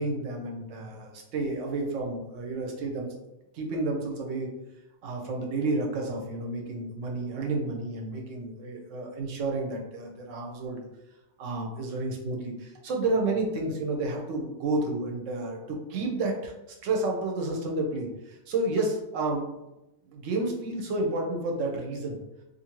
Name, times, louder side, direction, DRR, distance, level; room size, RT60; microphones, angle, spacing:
voice 1, 0.0-3.1 3.5-4.5 5.0-10.8 11.4-19.5 20.1-22.2, right 2 dB, 70° right, 1 dB, 0.8 m, -31 dB
2.5 x 2.5 x 2.9 m, 0.97 s
omnidirectional pair, 1.5 m